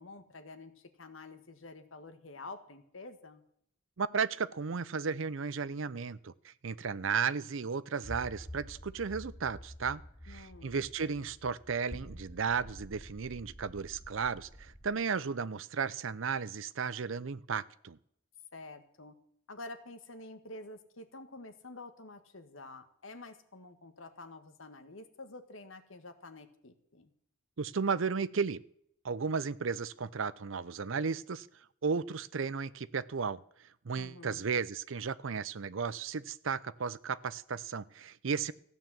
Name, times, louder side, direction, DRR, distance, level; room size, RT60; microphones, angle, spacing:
voice 1, 0.0-3.4 10.3-10.8 18.5-19.1 19.5-27.1 33.9-34.5, left 2 dB, 70° left, 9 dB, 1.6 m, -49 dB
voice 2, 4.0-10.0 10.3-18.0 27.6-28.6 29.0-31.5 31.8-33.4 33.8-38.5, right 5 dB, 65° right, 17 dB, 0.6 m, -34 dB
sound 1, 8.0-14.9, equal, 15° left, 3.2 m, -48 dB
15.0 x 9.2 x 7.6 m, 0.70 s
head